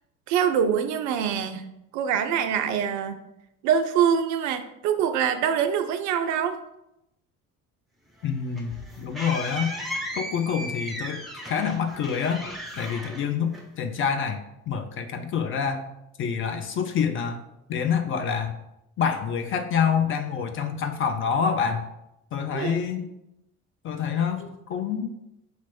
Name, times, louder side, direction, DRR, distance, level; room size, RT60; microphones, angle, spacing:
voice 1, 0.3-1.6 1.9-3.2 3.6-6.6 22.5-22.8, right 8 dB, 40° right, 8 dB, 0.4 m, -24 dB
voice 2, 8.2-9.7 10.1-12.4 12.8-15.9 16.2-17.4 17.7-18.5 19.0-21.9 22.3-23.1 23.8-25.1, left 7 dB, 30° left, 6 dB, 0.4 m, -27 dB
sound 1, 8.2-14.0, equal, ahead, 0.9 m, -36 dB
4.2 x 3.0 x 4.3 m, 0.85 s
figure-of-eight pair, 55°, 45 cm